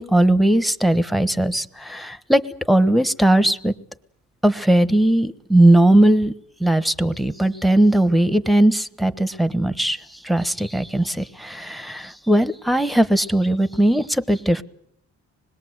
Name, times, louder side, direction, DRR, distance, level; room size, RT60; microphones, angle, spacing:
voice 1, 0.0-2.4 2.7-3.7 4.4-6.3 6.6-14.6, right 1 dB, ahead, 14 dB, 1.1 m, -18 dB
25.5 x 21.0 x 8.1 m, 0.71 s
cardioid pair, 90°, 30 cm